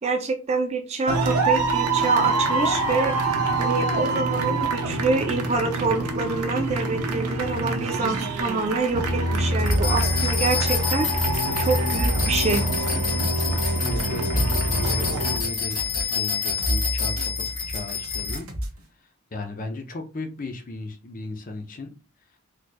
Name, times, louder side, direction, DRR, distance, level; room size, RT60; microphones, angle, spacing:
voice 1, 0.0-3.1 3.6-11.1 11.6-12.6, right 3 dB, 30° right, 6 dB, 0.4 m, -26 dB
sound 1, 1.1-15.4, right 2 dB, 90° right, 0.8 m, -25 dB
sound 2, 9.6-18.8, equal, 70° right, 1.1 m, -31 dB
sound 3, 9.7-18.4, left 6 dB, 60° left, 1.9 m, -28 dB
voice 2, 13.8-15.8 16.1-18.5 19.3-21.9, left 2 dB, 40° left, 4 dB, 0.6 m, -35 dB
4.4 x 3.0 x 2.2 m, 0.32 s
head